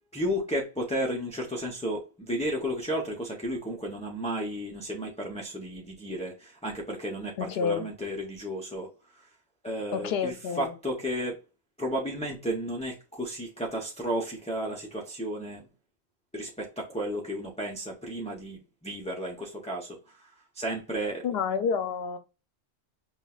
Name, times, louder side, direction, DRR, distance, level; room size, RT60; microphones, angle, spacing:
voice 1, 0.1-8.9 9.6-11.4 11.8-15.6 16.3-20.3 20.6-21.2, equal, 10° left, 0.4 m, -33 dB
voice 2, 7.4-7.9 9.9-10.7 21.2-22.2, left 6 dB, 70° left, 0.8 m, -29 dB
5.5 x 2.2 x 2.3 m
omnidirectional pair, 1.1 m